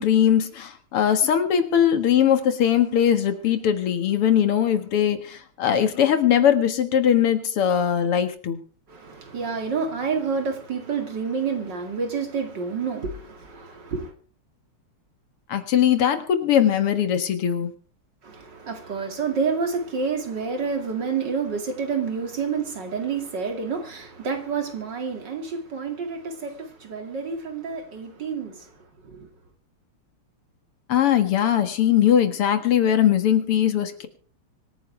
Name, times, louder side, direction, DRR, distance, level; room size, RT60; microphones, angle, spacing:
voice 1, 0.0-8.6 15.5-17.7 30.9-34.1, left 9 dB, 85° left, 2.6 m, -20 dB
voice 2, 8.9-14.1 18.2-28.8 29.0-29.3, right 5 dB, 50° right, 2.9 m, -29 dB
25.0 x 9.7 x 3.4 m
omnidirectional pair, 2.4 m